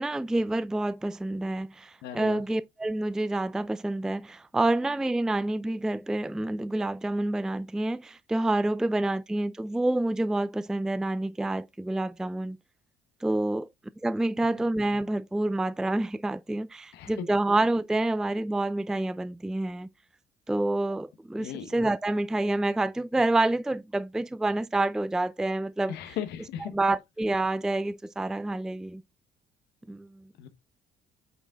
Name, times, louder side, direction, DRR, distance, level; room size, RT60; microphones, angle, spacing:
voice 1, 0.0-12.6 13.2-13.7 14.0-19.9 20.5-26.2 26.6-29.0 29.9-30.2, right 2 dB, 5° right, 0.4 m, -28 dB
voice 2, 2.0-2.4 14.4-14.5 16.9-17.3 21.4-21.7 25.9-26.8 30.4-30.5, left 9 dB, 85° left, 1.2 m, -37 dB
8.3 x 3.6 x 3.9 m
cardioid pair, 110°, 17 cm